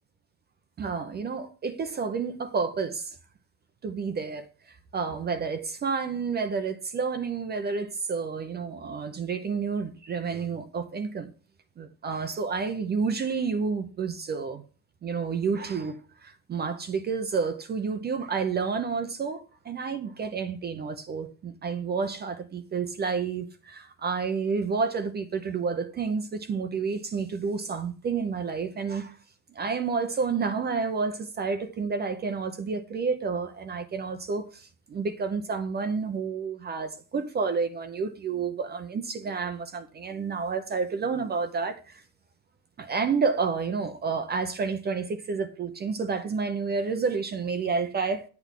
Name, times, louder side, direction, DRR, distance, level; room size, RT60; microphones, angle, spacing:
voice 1, 0.8-3.2 3.8-11.3 11.8-14.6 15.0-29.1 29.5-42.0 42.8-48.2, right 5 dB, 25° right, 0.6 m, -30 dB
10.5 x 8.3 x 3.6 m
cardioid pair, 160°, 44 cm